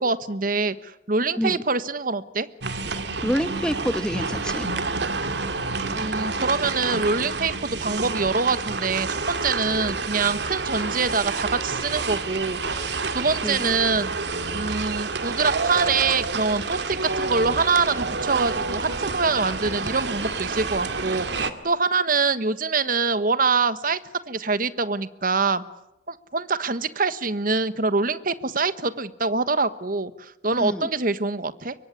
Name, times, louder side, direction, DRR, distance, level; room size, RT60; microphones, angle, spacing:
voice 1, 0.0-2.5 5.9-14.1 14.5-24.0 24.3-25.6 26.1-31.7, right 4 dB, 50° right, 13 dB, 1.3 m, -25 dB
sound 1, 2.6-21.5, right 4 dB, 65° right, 2.2 m, -28 dB
voice 2, 3.2-4.7 13.4-13.7 30.6-30.9, equal, 5° left, 11 dB, 1.2 m, -27 dB
25.0 x 23.5 x 9.8 m, 0.86 s
head